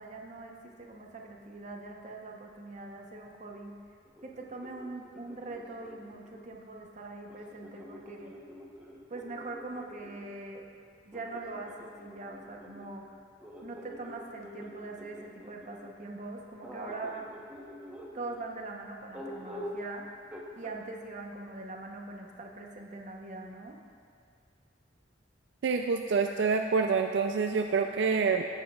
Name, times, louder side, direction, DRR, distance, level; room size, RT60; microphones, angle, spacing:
voice 1, 0.0-3.7 4.2-8.3 9.1-10.6 11.0-13.0 13.6-17.3 18.1-20.2 20.5-23.8, right 2 dB, 40° right, 1 dB, 0.9 m, -42 dB
sound 1, 4.1-6.5 7.3-10.3 11.1-15.9 16.6-18.4 19.1-19.9 20.3-20.8, equal, 5° right, 0.9 m, -46 dB
voice 2, 25.6-28.5, right 5 dB, 70° right, 5 dB, 0.4 m, -27 dB
15.0 x 7.4 x 2.4 m, 2.2 s
head